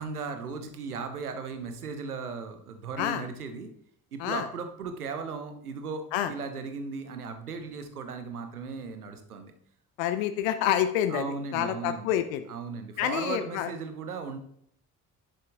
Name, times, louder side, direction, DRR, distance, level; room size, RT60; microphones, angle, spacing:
voice 1, 0.0-3.7 4.1-9.5 11.1-12.1 12.5-14.4, right 5 dB, 85° right, 8 dB, 1.1 m, -37 dB
voice 2, 10.0-11.2 11.5-12.5 13.0-13.7, left 11 dB, 65° left, 10 dB, 0.9 m, -27 dB
10.5 x 7.8 x 3.5 m, 0.68 s
figure-of-eight pair, 45°, 43 cm